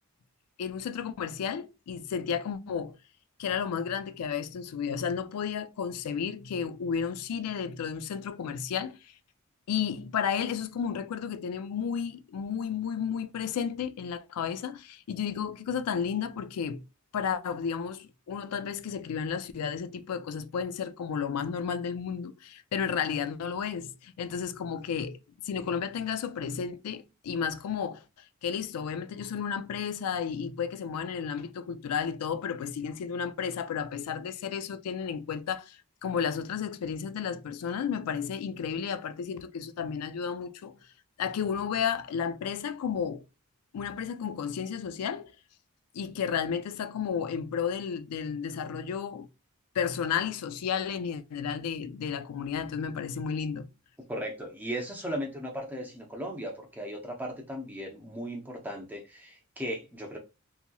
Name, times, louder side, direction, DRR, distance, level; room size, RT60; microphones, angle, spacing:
voice 1, 0.6-3.0 3.4-9.0 9.7-16.8 17.1-25.2 25.4-28.0 28.4-40.7 41.2-43.2 43.7-45.3 45.9-49.3 49.8-53.7, left 7 dB, 90° left, 0.4 m, -32 dB
voice 2, 54.1-60.2, equal, 10° right, 0.5 m, -37 dB
2.8 x 2.8 x 2.2 m
head